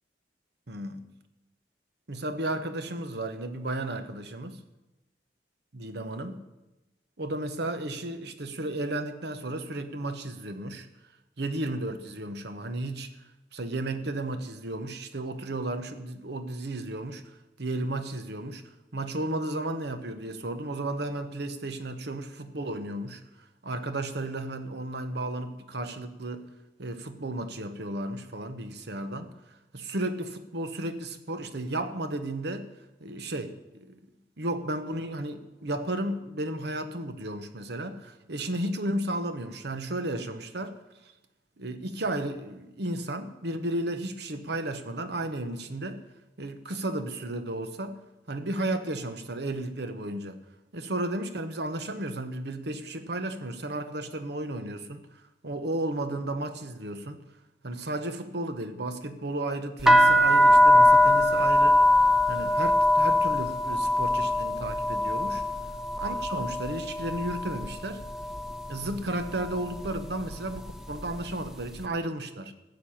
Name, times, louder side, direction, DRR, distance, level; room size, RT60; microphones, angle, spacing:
voice 1, 0.7-1.1 2.1-4.6 5.7-6.4 7.2-10.9 11.4-13.1 13.5-17.2 17.6-18.6 18.9-23.2 23.6-26.4 26.8-29.3 29.7-32.7 33.0-33.9 34.4-40.8 41.6-46.0 46.4-48.0 48.3-50.4 50.7-55.0 55.4-57.2 57.6-61.8 62.3-65.4 66.0-68.0 68.7-72.5, right 1 dB, 65° right, 1.1 m, -33 dB
sound 1, 59.8-67.7 68.0-68.6 69.3-69.6 69.8-71.3, left 1 dB, 5° right, 0.8 m, -22 dB
15.0 x 6.0 x 8.7 m
head